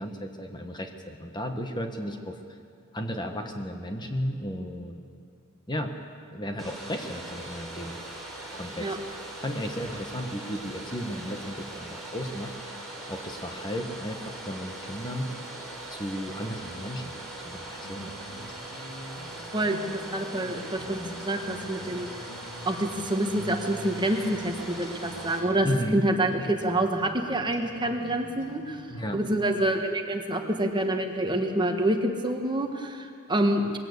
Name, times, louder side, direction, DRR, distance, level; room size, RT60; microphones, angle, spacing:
voice 1, 0.0-2.3 2.9-5.0 5.7-5.9 6.3-8.0 8.5-9.0 9.4-12.7 13.1-15.3 15.9-17.2 17.4-18.1 25.6-26.1 28.9-29.2, equal, 20° left, 4 dB, 1.3 m, -34 dB
Domestic sounds home sounds, 6.6-25.4, right 1 dB, ahead, 4.3 m, -40 dB
sound 1, 17.8-29.5, equal, 60° left, 2.5 m, -45 dB
voice 2, 19.5-22.1 22.6-28.9 29.1-33.8, right 1 dB, 20° right, 4 dB, 1.4 m, -27 dB
21.5 x 16.0 x 8.3 m, 2.5 s
head